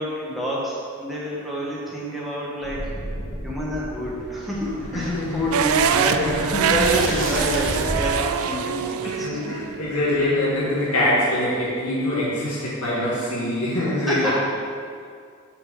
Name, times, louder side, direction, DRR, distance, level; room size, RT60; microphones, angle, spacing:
voice 1, 0.0-2.9 3.4-9.5 14.1-14.3, equal, ahead, -6 dB, 1.4 m, -28 dB
sound 1, 2.6-8.3, right 1 dB, 60° right, 1.8 m, -32 dB
voice 2, 4.9-5.4 6.2-6.8 9.0-14.3, left 1 dB, 90° left, -7 dB, 2.0 m, -24 dB
sound 2, 5.5-11.6, right 7 dB, 80° right, 0.4 m, -25 dB
6.6 x 4.4 x 6.3 m, 2.2 s
head